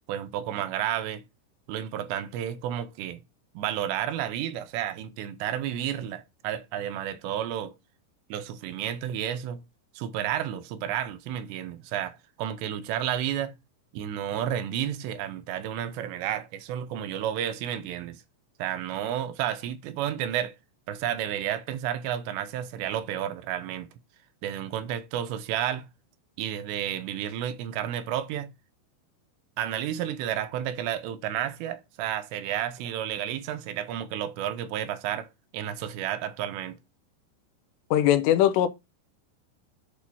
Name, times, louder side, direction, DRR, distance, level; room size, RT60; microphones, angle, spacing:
voice 1, 0.1-1.2 1.7-3.2 3.5-7.7 8.3-9.6 10.0-13.5 13.9-18.2 18.6-20.5 20.9-23.9 24.4-25.9 26.4-28.5 29.6-35.3 35.5-36.8, right 10 dB, 85° right, 2.9 m, -31 dB
voice 2, 37.9-38.7, left 11 dB, 80° left, 2.8 m, -20 dB
8.3 x 2.8 x 6.1 m
omnidirectional pair, 5.0 m